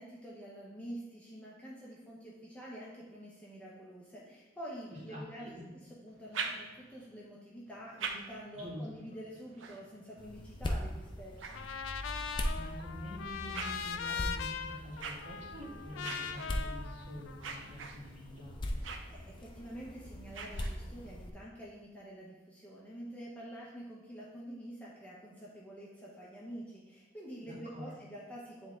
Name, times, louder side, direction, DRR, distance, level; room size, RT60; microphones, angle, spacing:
voice 1, 0.0-11.6 19.1-28.8, equal, 5° left, -6 dB, 0.8 m, -47 dB
voice 2, 5.1-5.6 8.5-8.8 12.5-18.6 27.4-27.9, equal, 40° right, -6 dB, 2.0 m, -46 dB
sound 1, 6.1-7.1 7.7-12.3 12.9-21.1, right 5 dB, 85° right, 0.6 m, -46 dB
sound 2, 10.2-21.3, left 1 dB, 25° left, 0.5 m, -41 dB
Trumpet, 11.5-17.8, left 6 dB, 90° left, 0.4 m, -41 dB
8.8 x 3.5 x 3.7 m, 1.1 s
head